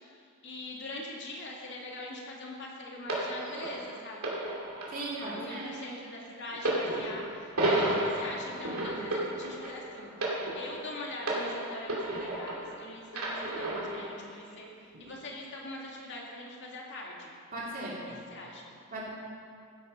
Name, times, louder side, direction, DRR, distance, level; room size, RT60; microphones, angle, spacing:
voice 1, 0.1-4.4 5.2-10.3 10.6-14.7 15.0-17.3 18.3-18.6, left 2 dB, 55° left, -2 dB, 2.2 m, -42 dB
sound 1, 3.1-12.7 13.1-14.2 14.9-15.1, right 1 dB, 90° right, 2.5 m, -33 dB
voice 2, 4.9-5.7 17.5-18.1 18.9-19.1, right 1 dB, 40° right, -5 dB, 3.0 m, -37 dB
14.5 x 8.4 x 5.5 m, 2.4 s
head